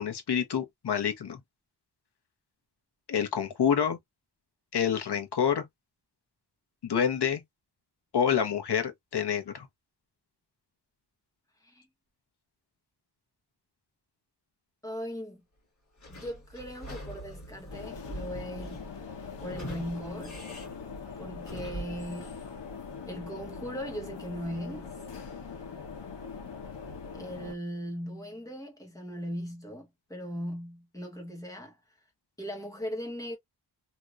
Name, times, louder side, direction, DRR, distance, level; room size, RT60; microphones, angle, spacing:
voice 1, 0.0-1.4 3.1-4.0 4.7-5.6 6.8-7.4 8.1-9.7, left 8 dB, 70° left, 1.0 m, -27 dB
voice 2, 14.8-15.4 16.1-18.9 19.4-20.4 21.2-22.3 23.1-24.9 27.1-31.8 32.4-33.4, equal, 10° left, 1.3 m, -38 dB
Sliding door / Squeak, 16.0-22.1, equal, 40° left, 1.9 m, -43 dB
sound 1, 17.7-27.5, left 5 dB, 90° left, 1.1 m, -42 dB
2.9 x 2.9 x 2.4 m
wide cardioid pair, 175°, 42 cm